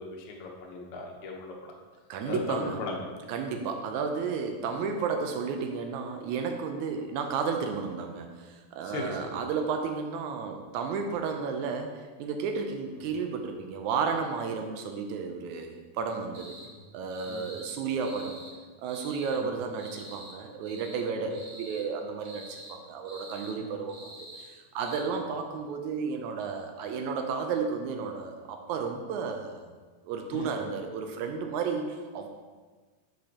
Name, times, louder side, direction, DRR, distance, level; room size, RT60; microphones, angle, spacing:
voice 1, 0.0-1.7 2.3-3.0 8.8-9.4 16.7-16.8 17.3-17.5 19.3-19.5 21.2-21.3 23.6-23.7 30.3-30.5, left 3 dB, 65° left, 0 dB, 2.1 m, -38 dB
voice 2, 2.1-2.8 3.3-16.5 16.9-18.4 18.8-29.7 30.1-32.3, right 5 dB, 80° right, 4 dB, 1.7 m, -32 dB
sound 1, 16.3-16.7 17.1-17.7 18.0-18.5 18.8-19.4 19.7-20.4 20.6-21.0 21.3-21.8 22.2-22.7 23.0-23.5 23.9-24.5 24.8-25.0, right 1 dB, 55° right, 2.5 m, -47 dB
9.7 x 7.7 x 2.9 m, 1.4 s
omnidirectional pair, 4.1 m